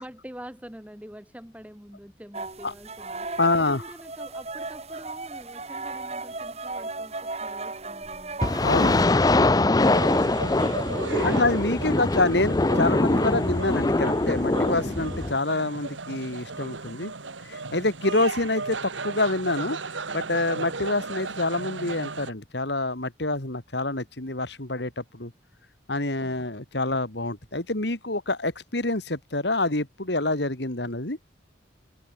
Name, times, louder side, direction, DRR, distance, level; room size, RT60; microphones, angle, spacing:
voice 1, 0.0-11.6, equal, 5° right, 6.5 m, -45 dB
sound 1, 2.3-9.0, right 3 dB, 35° right, 4.2 m, -36 dB
voice 2, 3.4-3.8 8.6-9.0 11.2-17.1 17.5-19.8 20.1-25.3 25.9-31.2, left 2 dB, 65° left, 2.9 m, -27 dB
sound 2, 8.4-15.3, left 2 dB, 20° left, 0.5 m, -23 dB
sound 3, 9.8-22.3, right 3 dB, 90° right, 2.0 m, -35 dB
open air
head